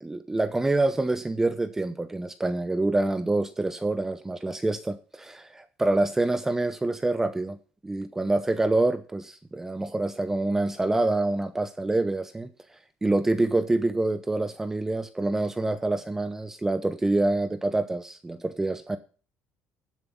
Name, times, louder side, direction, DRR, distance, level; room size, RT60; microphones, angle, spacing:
voice 1, 0.0-7.6 7.8-12.5 13.0-19.0, right 2 dB, 10° right, 0.8 m, -26 dB
12.0 x 7.7 x 5.8 m
cardioid pair, 130°, 4 cm